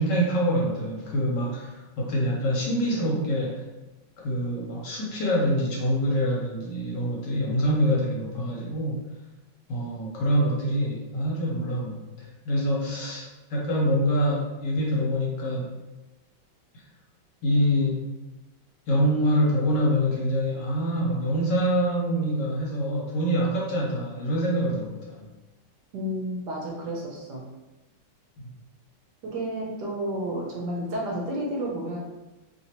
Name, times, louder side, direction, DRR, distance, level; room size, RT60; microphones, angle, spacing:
voice 1, 0.0-3.6 4.2-9.0 9.7-13.2 13.5-15.7 17.4-18.0 18.9-25.3, equal, 70° left, -3 dB, 1.3 m, -25 dB
voice 2, 25.9-27.5 29.2-32.0, right 1 dB, 70° right, -2 dB, 1.2 m, -31 dB
3.2 x 2.9 x 2.9 m, 1.1 s
omnidirectional pair, 2.1 m